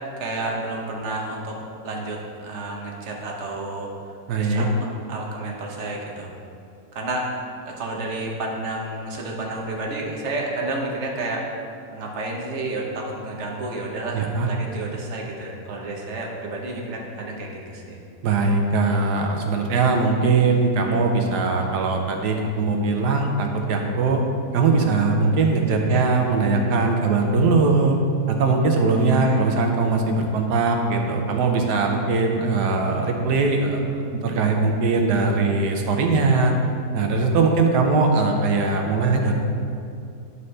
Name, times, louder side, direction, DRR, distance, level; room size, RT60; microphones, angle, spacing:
voice 1, 0.2-1.6 1.8-3.9 4.3-6.3 6.9-11.6 11.9-18.0 25.9-26.1 28.9-29.4, right 2 dB, 50° right, -1 dB, 1.1 m, -31 dB
voice 2, 4.3-4.7 14.1-14.5 18.2-24.2 24.5-28.0 28.3-36.5 36.9-39.3, right 3 dB, 80° right, 2 dB, 1.3 m, -20 dB
11.0 x 4.0 x 3.2 m, 2.4 s
omnidirectional pair, 1.7 m